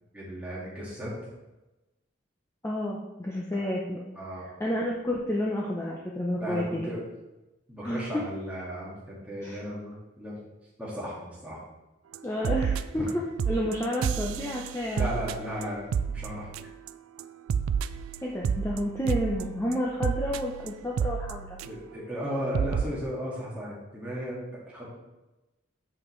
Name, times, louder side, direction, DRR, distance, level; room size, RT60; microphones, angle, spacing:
voice 1, 0.1-1.2 3.5-3.7 4.1-4.5 6.4-7.0 7.7-10.4 10.8-11.6 12.9-13.0 15.0-16.5 21.6-24.9, equal, 5° right, -6 dB, 1.7 m, -35 dB
voice 2, 2.6-4.0 4.6-6.9 7.8-8.1 9.4-9.6 12.2-15.2 18.2-21.6, equal, 15° left, -3 dB, 0.5 m, -30 dB
sound 1, 12.1-12.2 12.4-13.1 13.4-16.9 17.2-22.0 22.2-22.3 22.5-22.8, right 7 dB, 85° right, 0.3 m, -30 dB
7.2 x 5.5 x 3.2 m, 1.0 s
head